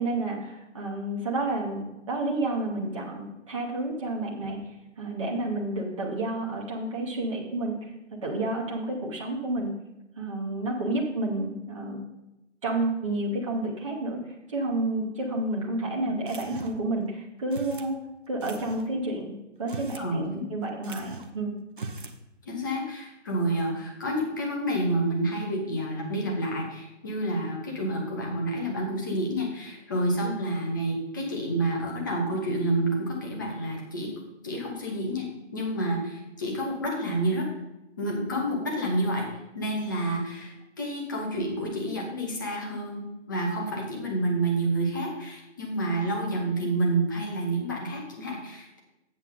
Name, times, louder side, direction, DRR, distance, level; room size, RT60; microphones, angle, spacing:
voice 1, 0.0-4.6 5.0-7.8 8.2-9.7 10.2-12.0 12.6-14.2 14.5-18.0 18.3-21.6 30.2-30.4, right 2 dB, 25° right, -3 dB, 0.9 m, -30 dB
sound 1, 16.3-16.9 17.5-17.9 18.4-18.9 19.6-20.1 20.4-20.5 20.8-21.4 21.7-22.2, right 3 dB, 45° right, 0.7 m, -40 dB
voice 2, 22.5-34.1 34.4-35.3 35.5-37.5 38.0-39.3 39.5-48.8, right 1 dB, 15° left, 0 dB, 1.0 m, -29 dB
8.0 x 7.7 x 3.8 m, 0.94 s
figure-of-eight pair, 155°, 37 cm